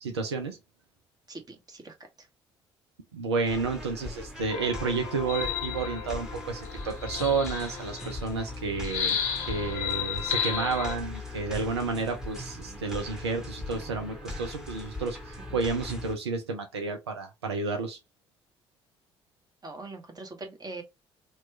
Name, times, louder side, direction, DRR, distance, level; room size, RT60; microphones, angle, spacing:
voice 1, 0.0-0.6 3.1-9.2 9.5-18.0, right 4 dB, 85° right, 0.4 m, -31 dB
voice 2, 1.3-1.9 12.6-13.1 15.5-15.6 19.6-20.8, right 3 dB, 30° right, 1.1 m, -43 dB
sound 1, 3.5-16.1, left 2 dB, 5° right, 1.1 m, -40 dB
sound 2, 4.5-8.2 8.8-11.0, left 8 dB, 65° left, 0.7 m, -33 dB
2.9 x 2.3 x 3.1 m
figure-of-eight pair, 45°, 14 cm